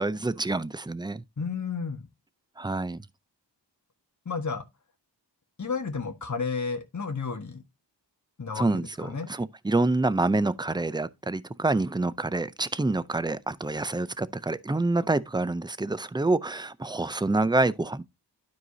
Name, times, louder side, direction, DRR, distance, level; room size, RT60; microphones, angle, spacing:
voice 1, 0.0-1.2 2.6-3.0 8.6-18.0, right 2 dB, 10° right, 0.4 m, -27 dB
voice 2, 1.4-2.1 4.2-4.6 5.6-7.6 8.4-9.3, left 5 dB, 40° left, 1.3 m, -32 dB
12.0 x 4.7 x 2.7 m
wide cardioid pair, 60°, 44 cm